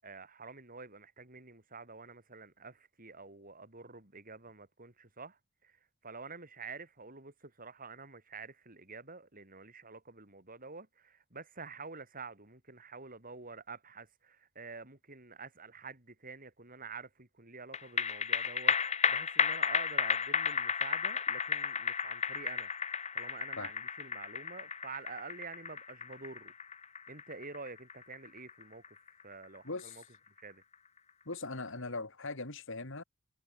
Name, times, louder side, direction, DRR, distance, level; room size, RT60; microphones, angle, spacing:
voice 1, 0.0-5.7 6.0-22.7 23.1-26.5 27.1-28.8 29.2-30.0 30.4-30.6, right 4 dB, 40° right, 6.3 m, -48 dB
sound 1, 17.7-30.4 30.7-30.8, left 6 dB, 30° left, 1.1 m, -33 dB
voice 2, 29.6-30.0 31.2-33.0, left 3 dB, 65° left, 3.3 m, -40 dB
head